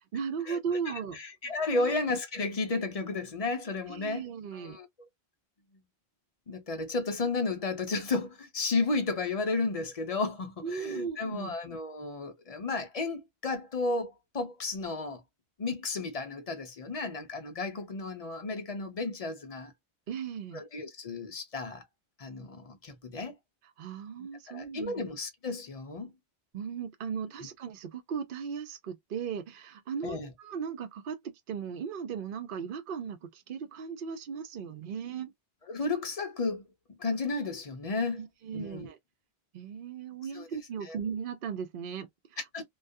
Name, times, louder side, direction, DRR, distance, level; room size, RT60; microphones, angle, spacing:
voice 1, 0.1-1.2 1.4-1.9 3.9-4.8 10.6-11.5 20.1-20.6 23.8-25.0 26.5-35.3 38.2-39.0 39.5-42.4, right 6 dB, 60° right, 0.7 m, -37 dB
voice 2, 0.9-4.3 4.5-4.9 6.5-15.2 15.6-19.7 20.5-21.8 22.2-23.4 24.5-26.1 30.0-30.3 35.7-36.6 36.9-38.2 38.5-38.9 40.3-40.5 40.8-41.0 42.5-42.6, left 3 dB, 45° left, 0.6 m, -33 dB
2.4 x 2.2 x 2.5 m
omnidirectional pair, 1.1 m